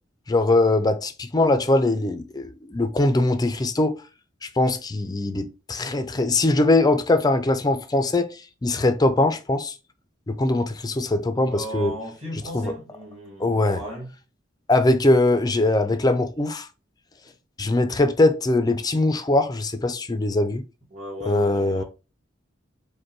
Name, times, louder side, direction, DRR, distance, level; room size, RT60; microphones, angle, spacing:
voice 1, 0.3-3.9 4.4-8.3 8.6-9.7 10.3-12.0 12.5-12.7 13.4-13.8 14.7-16.7 17.6-20.6 21.3-21.8, left 2 dB, 20° left, 0.4 m, -21 dB
voice 2, 11.4-14.1 20.9-21.8, right 1 dB, 35° right, 1.7 m, -36 dB
5.1 x 2.2 x 4.4 m
head